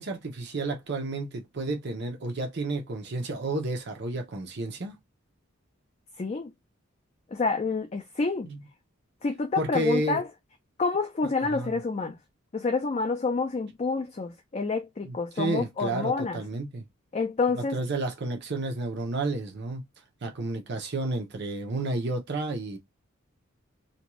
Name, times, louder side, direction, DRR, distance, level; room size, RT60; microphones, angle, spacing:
voice 1, 0.0-4.9 8.5-8.6 9.6-10.2 11.5-11.8 15.0-16.8 17.5-19.8 20.2-22.8, right 2 dB, 55° right, 0.7 m, -31 dB
voice 2, 6.2-6.5 7.3-8.5 9.2-10.3 10.8-12.2 12.5-16.4 17.1-17.8, left 4 dB, 30° left, 0.4 m, -28 dB
2.6 x 2.2 x 2.9 m
head